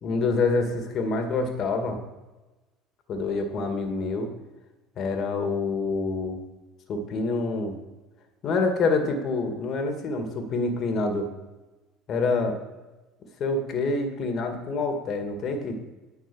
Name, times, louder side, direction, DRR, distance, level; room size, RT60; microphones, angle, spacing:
voice 1, 0.0-2.0 3.1-4.3 5.0-6.4 6.9-7.8 8.4-11.3 12.1-12.6 13.4-15.8, left 3 dB, 50° left, 5 dB, 2.0 m, -26 dB
10.0 x 6.1 x 6.2 m, 1.1 s
hypercardioid pair, 65°, 0 cm